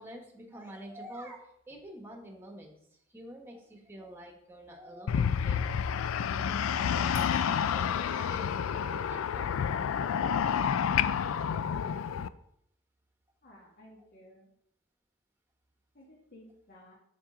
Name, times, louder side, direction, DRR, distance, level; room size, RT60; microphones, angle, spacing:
voice 1, 0.0-2.7 3.1-9.6 9.9-10.5, right 1 dB, 10° right, 1 dB, 1.3 m, -48 dB
sound 1, 5.1-12.3, left 7 dB, 75° left, 0.3 m, -29 dB
sound 2, 7.2-8.7, right 4 dB, 35° right, 0.7 m, -52 dB
voice 2, 13.4-14.5 15.9-16.9, left 1 dB, 50° left, -3 dB, 1.8 m, -55 dB
7.3 x 6.3 x 3.7 m, 0.72 s
head